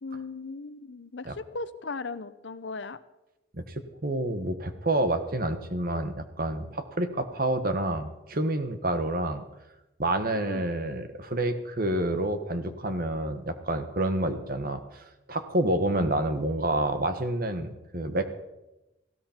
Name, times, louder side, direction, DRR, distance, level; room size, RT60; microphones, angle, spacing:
voice 1, 0.0-3.0 10.3-10.6, left 3 dB, 70° left, 13 dB, 0.8 m, -37 dB
voice 2, 4.0-9.5 10.0-18.3, right 1 dB, 50° right, 9 dB, 1.3 m, -28 dB
18.5 x 15.5 x 4.4 m, 0.98 s
head